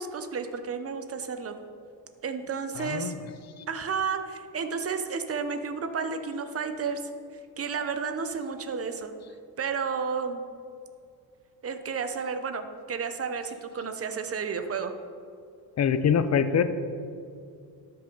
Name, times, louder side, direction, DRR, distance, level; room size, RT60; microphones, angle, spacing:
voice 1, 0.0-1.6 2.2-3.1 3.7-7.0 7.6-9.1 9.6-10.4 11.6-14.9, right 5 dB, 30° right, 8 dB, 0.8 m, -32 dB
voice 2, 2.8-3.2 3.6-3.7 15.8-16.6, left 7 dB, 40° left, 11 dB, 0.6 m, -24 dB
12.5 x 5.7 x 3.9 m, 2.4 s
cardioid pair, 105°, 44 cm